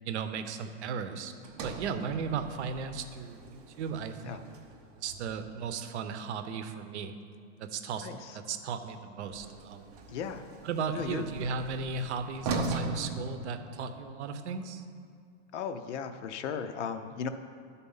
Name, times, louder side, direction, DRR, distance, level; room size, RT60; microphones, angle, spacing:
voice 1, 0.0-4.4 4.9-7.1 7.6-9.8 10.6-14.8, right 5 dB, 65° right, 9 dB, 0.7 m, -36 dB
Sliding door, 1.4-5.7 9.2-14.1, right 3 dB, 35° right, 0.5 m, -40 dB
voice 2, 4.0-4.4 8.0-8.4 10.1-10.5 10.9-11.3 15.5-17.3, left 7 dB, 70° left, 8 dB, 0.6 m, -36 dB
12.0 x 4.2 x 5.5 m, 2.3 s
supercardioid pair, 180°, 36 cm